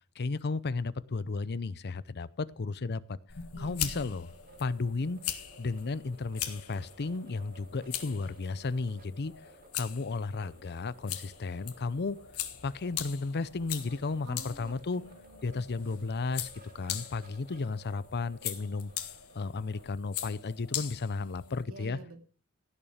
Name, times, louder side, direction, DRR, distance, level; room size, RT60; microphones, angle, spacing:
voice 1, 0.2-3.2 3.6-4.3 4.6-5.2 5.6-9.3 9.7-12.2 12.6-15.0 15.4-16.5 16.7-18.9 19.3-22.0, left 3 dB, 50° left, 18 dB, 0.6 m, -34 dB
sound 1, 3.3-21.6, left 10 dB, 80° left, 1.5 m, -41 dB
voice 2, 3.5-4.1 14.2-15.6 21.6-22.2, right 2 dB, 75° right, 4 dB, 2.8 m, -49 dB
sound 2, 3.6-20.3, right 2 dB, 40° right, 1.9 m, -58 dB
16.5 x 7.1 x 5.1 m, 0.42 s
head